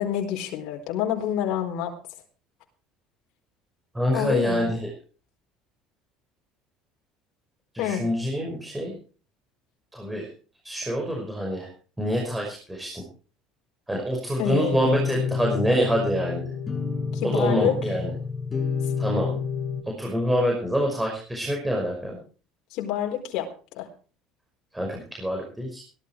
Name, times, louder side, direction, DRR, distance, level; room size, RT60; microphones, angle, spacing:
voice 1, 0.0-1.9 4.1-4.7 7.8-8.0 14.4-14.9 17.1-17.7 18.8-18.9 22.7-23.5 23.7-23.9, left 10 dB, 65° left, 2 dB, 4.4 m, -27 dB
voice 2, 3.9-4.9 7.7-9.0 9.9-10.3 10.6-11.7 12.0-13.0 13.9-16.5 17.2-18.1 19.0-19.4 20.0-22.2 24.7-25.8, equal, 5° right, -1 dB, 5.6 m, -26 dB
sound 1, 14.8-19.8, left 5 dB, 15° left, 7.4 m, -29 dB
17.5 x 12.5 x 4.6 m, 0.38 s
cardioid pair, 130°, 0 cm